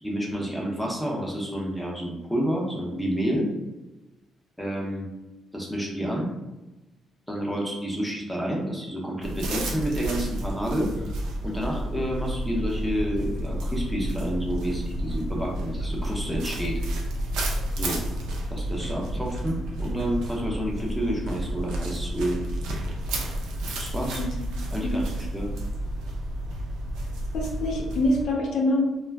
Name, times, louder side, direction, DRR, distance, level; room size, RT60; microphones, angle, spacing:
voice 1, 0.0-3.5 4.6-5.1 5.5-6.3 7.3-11.1 11.4-16.8 17.7-18.0 18.5-22.4 23.7-24.2 24.7-25.5, equal, ahead, -3 dB, 0.7 m, -29 dB
sound 1, 9.2-28.2, right 1 dB, 90° right, 0.5 m, -31 dB
voice 2, 27.3-28.8, left 1 dB, 70° left, 0 dB, 0.6 m, -25 dB
2.3 x 2.1 x 3.3 m, 1.0 s
cardioid pair, 90°, 0 cm